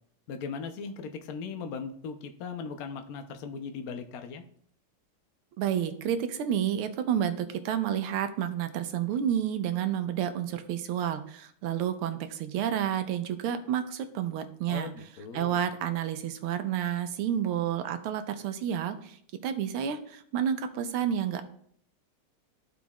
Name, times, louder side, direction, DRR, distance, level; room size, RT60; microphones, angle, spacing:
voice 1, 0.3-4.4 14.7-15.6, left 5 dB, 65° left, 6 dB, 0.9 m, -38 dB
voice 2, 5.6-14.9 15.3-19.2 19.4-21.4, right 9 dB, 90° right, 9 dB, 1.6 m, -30 dB
13.5 x 5.1 x 2.4 m, 0.63 s
omnidirectional pair, 2.4 m